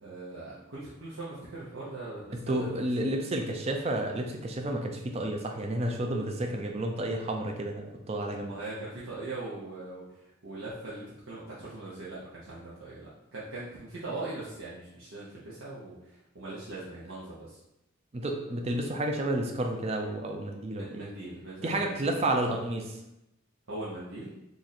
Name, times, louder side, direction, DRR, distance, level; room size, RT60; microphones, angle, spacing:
voice 1, 0.0-2.7 8.4-17.6 20.7-22.1 23.7-24.3, right 2 dB, 85° right, -8 dB, 0.8 m, -41 dB
voice 2, 2.3-8.5 18.1-21.1 21.6-22.9, right 1 dB, 30° right, 3 dB, 0.4 m, -31 dB
3.0 x 2.6 x 4.0 m, 0.90 s
head